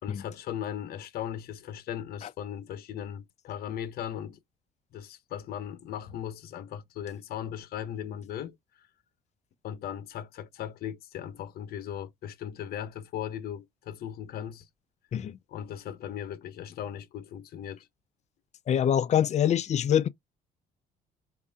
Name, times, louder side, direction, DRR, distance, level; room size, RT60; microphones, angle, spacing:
voice 1, 0.0-4.4 4.9-8.9 9.6-14.7 15.5-17.9, left 10 dB, 65° left, 1.0 m, -38 dB
voice 2, 18.7-20.1, left 9 dB, 40° left, 0.5 m, -25 dB
4.8 x 2.5 x 3.5 m
cardioid pair, 110°, 17 cm